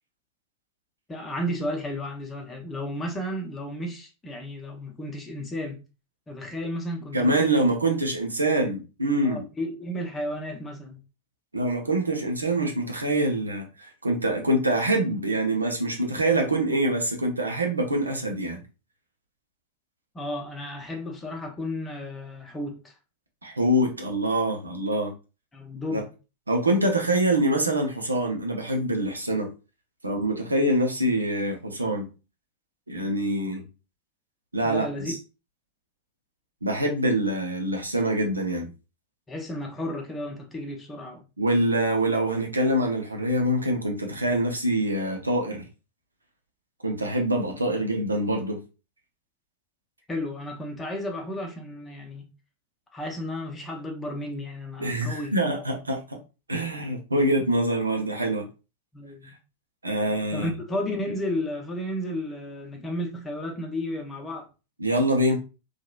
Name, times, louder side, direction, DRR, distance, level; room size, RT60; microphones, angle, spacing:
voice 1, 1.1-5.8 6.3-7.7 9.2-11.0 20.1-22.9 25.5-26.1 34.6-35.1 39.3-41.3 50.1-52.3 52.9-55.3 58.9-59.3 60.3-64.5, left 1 dB, 15° left, 0.7 m, -33 dB
voice 2, 7.1-9.4 11.5-18.6 23.4-25.1 26.5-29.5 30.0-32.1 32.9-33.6 34.5-35.2 36.6-38.7 41.4-45.6 46.8-48.6 54.8-56.2 56.5-58.5 59.8-60.5 64.8-65.4, right 1 dB, 80° right, 0.6 m, -25 dB
2.9 x 2.4 x 2.3 m
figure-of-eight pair, 90°, 0 cm